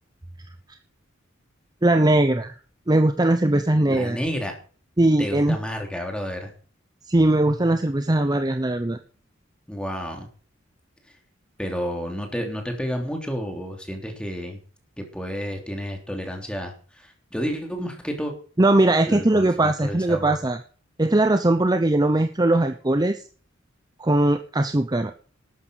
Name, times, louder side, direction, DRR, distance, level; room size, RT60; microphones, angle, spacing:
voice 1, 1.8-2.5 2.9-4.2 5.0-5.6 7.1-9.0 18.6-20.6 21.0-23.2 24.0-25.1, right 1 dB, 20° right, 8 dB, 0.7 m, -20 dB
voice 2, 3.9-4.5 5.2-6.5 9.7-10.3 11.6-14.6 15.0-18.3 19.1-20.4, equal, 5° left, 3 dB, 3.3 m, -30 dB
12.5 x 9.5 x 6.4 m, 0.41 s
head